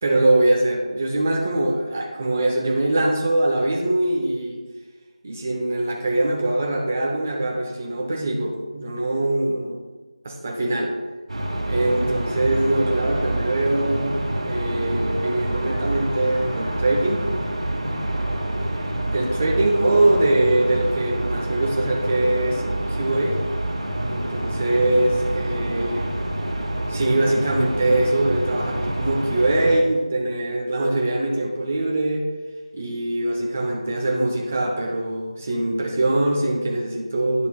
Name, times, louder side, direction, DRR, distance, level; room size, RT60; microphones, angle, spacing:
voice 1, 0.0-4.6 5.2-9.8 10.2-11.0 11.7-14.2 14.4-17.3 19.1-22.6 22.9-23.4 24.1-26.1 26.9-32.2 32.7-37.5, right 1 dB, 15° right, -1 dB, 0.6 m, -22 dB
sound 1, 11.3-29.8, right 1 dB, 55° right, 2.1 m, -27 dB
10.5 x 6.7 x 2.3 m, 1.3 s
figure-of-eight pair, 175°, 4 cm